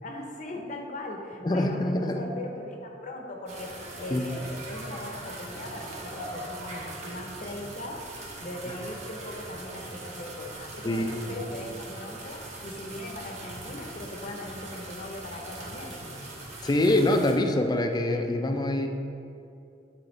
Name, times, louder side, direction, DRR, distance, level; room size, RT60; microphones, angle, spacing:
voice 1, 0.0-16.0, left 1 dB, 45° left, 1 dB, 0.7 m, -40 dB
voice 2, 1.4-2.2 4.1-4.2 8.7-8.8 10.8-11.4 16.6-18.9, left 1 dB, 25° left, 5 dB, 0.4 m, -25 dB
sound 1, 3.5-17.3, right 1 dB, 40° right, 1.1 m, -41 dB
9.0 x 3.8 x 3.2 m, 2.6 s
head